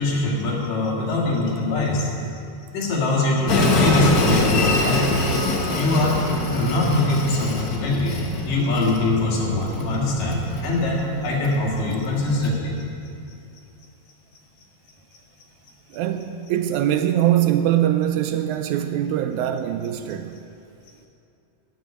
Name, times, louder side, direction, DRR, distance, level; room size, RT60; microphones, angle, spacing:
voice 1, 0.0-2.1 2.7-5.2 5.7-6.2 6.4-8.2 8.4-12.8, left 2 dB, 90° left, -3 dB, 3.8 m, -23 dB
Train, 3.5-12.5, left 2 dB, 65° left, 0.8 m, -25 dB
voice 2, 15.9-20.4, right 11 dB, 80° right, 8 dB, 1.8 m, -22 dB
13.0 x 6.3 x 9.5 m, 2.6 s
omnidirectional pair, 3.7 m